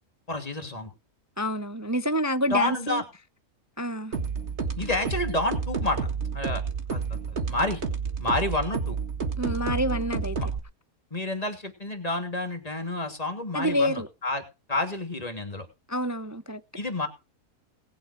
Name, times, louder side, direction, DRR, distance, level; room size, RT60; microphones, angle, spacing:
voice 1, 0.3-0.9 2.5-3.0 4.8-6.0 6.3-6.6 6.9-7.8 8.2-9.0 10.4-10.5 11.1-14.4 14.7-15.7 16.7-17.1, left 2 dB, 25° left, 2.9 m, -29 dB
voice 2, 1.4-3.0 3.8-4.1 9.4-10.4 13.5-14.1 15.9-16.6, equal, 20° right, 0.5 m, -27 dB
sound 1, 4.1-10.6, right 5 dB, 50° right, 2.0 m, -30 dB
19.5 x 8.1 x 4.9 m
omnidirectional pair, 1.5 m